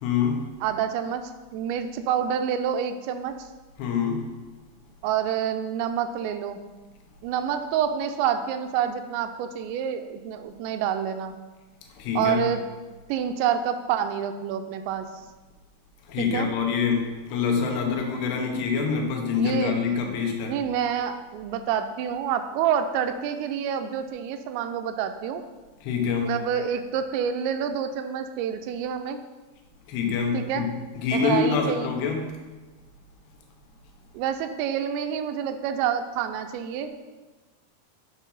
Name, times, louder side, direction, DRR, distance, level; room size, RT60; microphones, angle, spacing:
voice 1, 0.0-0.5 3.8-4.3 12.0-12.5 16.1-20.6 25.8-26.3 29.9-32.3, left 6 dB, 75° left, 1 dB, 3.0 m, -26 dB
voice 2, 0.6-3.4 5.0-6.6 7.2-11.3 12.2-12.6 13.1-15.1 16.2-16.5 19.4-19.8 20.4-25.4 26.3-29.2 30.3-30.7 31.1-31.9 34.1-37.0, right 8 dB, 85° right, 7 dB, 2.8 m, -28 dB
8.2 x 4.5 x 5.5 m, 1.2 s
omnidirectional pair, 5.3 m